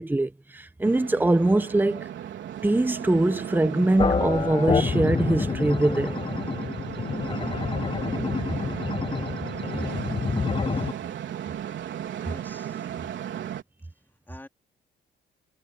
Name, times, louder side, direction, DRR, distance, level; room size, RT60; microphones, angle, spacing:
voice 1, 0.0-2.0 2.6-6.2, right 2 dB, 10° right, 1.1 m, -23 dB
sound 1, 0.8-13.6, right 10 dB, 70° right, 4.0 m, -35 dB
sound 2, 4.0-10.9, left 5 dB, 25° left, 0.7 m, -28 dB
voice 2, 12.2-12.9 14.3-14.5, left 1 dB, 10° left, 3.7 m, -47 dB
cardioid pair, 90°, 20 cm